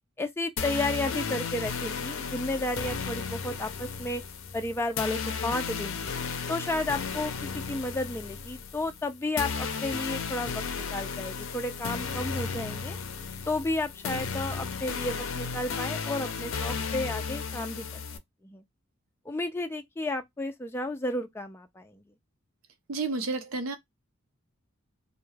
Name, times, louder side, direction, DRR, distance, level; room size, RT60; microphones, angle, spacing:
voice 1, 0.2-4.2 4.5-6.1 6.5-13.0 13.5-17.8 18.4-18.6 19.3-22.0, left 2 dB, 10° left, 0.4 m, -32 dB
sound 1, 0.6-18.2, left 5 dB, 75° left, 0.5 m, -34 dB
voice 2, 22.9-23.8, right 3 dB, 80° right, 0.6 m, -30 dB
2.2 x 2.1 x 3.1 m
head